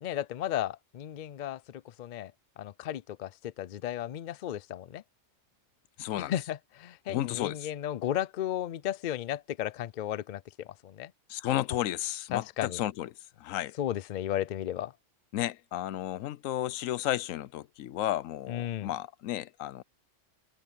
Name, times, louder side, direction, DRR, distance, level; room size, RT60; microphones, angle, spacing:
voice 1, 0.0-5.0 6.3-11.1 12.3-12.8 13.8-14.9 18.5-18.9, left 11 dB, 65° left, 0.4 m, -34 dB
voice 2, 6.0-6.3 7.1-7.7 11.3-13.1 13.4-13.7 15.3-19.8, left 13 dB, 85° left, 1.0 m, -33 dB
omnidirectional pair, 1.3 m